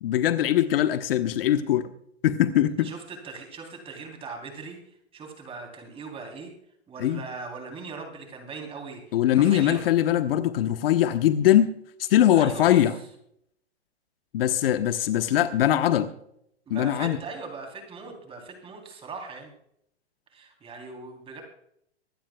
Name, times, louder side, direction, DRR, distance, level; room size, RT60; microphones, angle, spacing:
voice 1, 0.0-1.9 2.2-2.9 7.0-7.2 9.1-11.7 12.0-12.9 14.3-16.1 16.7-17.2, left 11 dB, 60° left, 9 dB, 1.1 m, -21 dB
voice 2, 2.8-4.8 5.1-6.5 6.9-9.0 9.3-9.8 12.3-12.8 16.7-19.5 20.3-21.4, right 4 dB, 15° right, 3 dB, 3.5 m, -39 dB
25.0 x 12.5 x 2.3 m, 0.72 s
hypercardioid pair, 140°, 33 cm